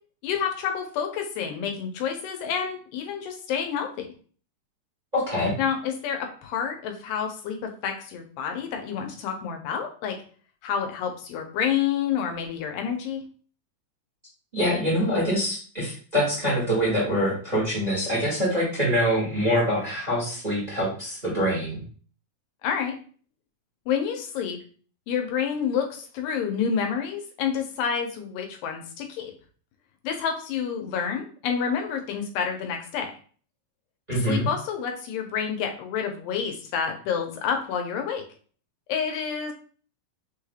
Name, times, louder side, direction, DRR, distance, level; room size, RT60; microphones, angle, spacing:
voice 1, 0.2-4.1 5.6-10.2 10.6-13.2 22.6-22.9 23.9-24.6 25.1-29.3 30.0-33.1 34.2-38.2 38.9-39.5, left 7 dB, 90° left, 3 dB, 2.5 m, -29 dB
voice 2, 5.1-5.5 14.5-21.8 34.1-34.5, equal, 15° right, -7 dB, 1.5 m, -25 dB
6.0 x 3.3 x 2.3 m, 0.42 s
omnidirectional pair, 3.8 m